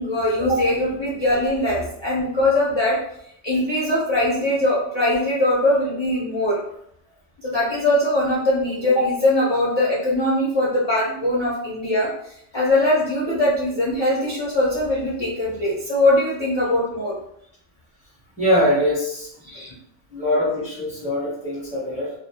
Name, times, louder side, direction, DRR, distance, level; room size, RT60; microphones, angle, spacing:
voice 1, 0.0-3.0 3.4-6.6 7.4-17.2 19.4-19.7, left 1 dB, 40° left, -7 dB, 0.4 m, -21 dB
voice 2, 18.4-19.4 20.1-22.1, equal, 10° right, -7 dB, 0.6 m, -22 dB
2.2 x 2.0 x 2.8 m, 0.71 s
omnidirectional pair, 1.2 m